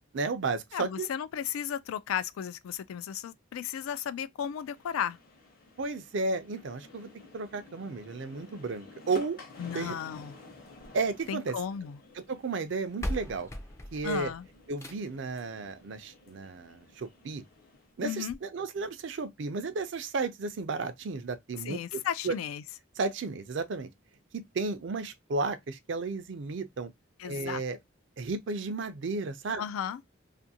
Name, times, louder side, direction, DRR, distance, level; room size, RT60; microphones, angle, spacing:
voice 1, 0.1-1.1 5.8-9.4 9.7-10.0 10.9-11.6 12.2-13.5 13.9-14.3 14.7-17.4 18.0-22.4 23.0-23.9 24.3-26.9 27.2-27.8 28.2-29.6, right 4 dB, 60° right, 0.4 m, -33 dB
voice 2, 0.7-5.2 9.6-10.4 11.3-12.0 14.0-14.5 18.0-18.4 21.6-22.6 27.2-27.6 29.6-30.0, left 8 dB, 90° left, 0.3 m, -34 dB
sound 1, 4.5-18.0, left 2 dB, 45° left, 0.8 m, -53 dB
sound 2, 10.6-11.8 12.6-12.7 13.0-15.3 16.6-16.7 17.2-17.3 17.6-17.7 18.2-18.4, equal, 15° left, 0.3 m, -39 dB
2.5 x 2.5 x 2.7 m
head